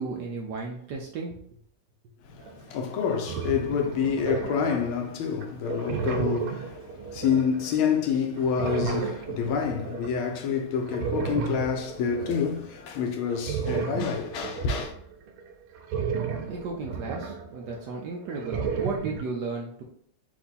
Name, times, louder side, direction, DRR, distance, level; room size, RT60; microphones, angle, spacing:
voice 1, 0.0-1.4 16.5-19.8, right 4 dB, 70° right, 1.1 m, -34 dB
voice 2, 2.3-14.9, left 6 dB, 75° left, 1.5 m, -28 dB
sound 1, 2.5-2.6 3.0-5.0 5.4-8.1 8.4-10.2 10.8-12.6 13.3-18.0 18.3-19.2, right 6 dB, 85° right, 1.5 m, -33 dB
4.6 x 2.6 x 4.0 m
omnidirectional pair, 2.3 m